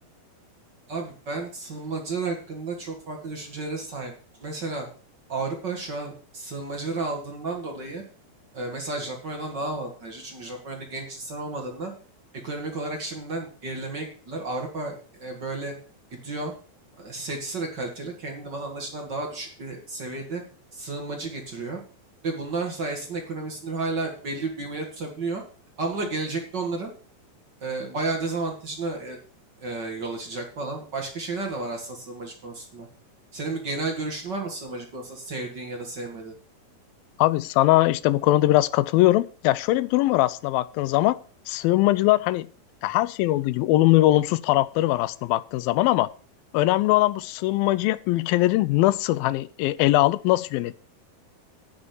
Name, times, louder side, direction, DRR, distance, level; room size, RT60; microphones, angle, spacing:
voice 1, 0.9-4.9 5.3-8.0 8.5-11.9 12.4-15.7 16.1-16.5 17.0-20.4 20.7-21.8 22.2-25.4 25.8-26.9 27.6-29.2 29.6-32.9 33.3-36.3, right 3 dB, 35° right, 2 dB, 1.9 m, -32 dB
voice 2, 37.2-41.2 41.5-42.5 42.8-46.1 46.5-50.8, left 17 dB, 80° left, 18 dB, 2.3 m, -21 dB
9.5 x 6.9 x 7.0 m, 0.40 s
omnidirectional pair, 4.2 m